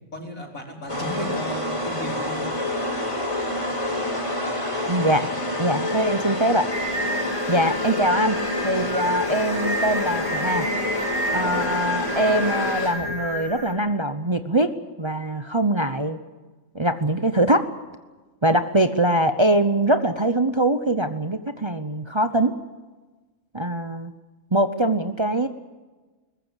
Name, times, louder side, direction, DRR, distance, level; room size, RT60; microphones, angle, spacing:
voice 1, 0.1-2.5, equal, 80° left, 0 dB, 4.9 m, -34 dB
sound 1, 0.9-13.3, left 1 dB, 20° left, 2.9 m, -27 dB
voice 2, 4.9-5.3 5.6-6.7 7.5-10.7 11.3-14.7 15.0-16.2 16.7-17.7 18.4-22.5 23.5-24.1 24.5-25.5, right 1 dB, 25° right, 9 dB, 0.8 m, -22 dB
Singing, 6.7-13.7, equal, 50° left, 4.6 m, -30 dB
22.0 x 20.0 x 8.1 m, 1.2 s
omnidirectional pair, 1.4 m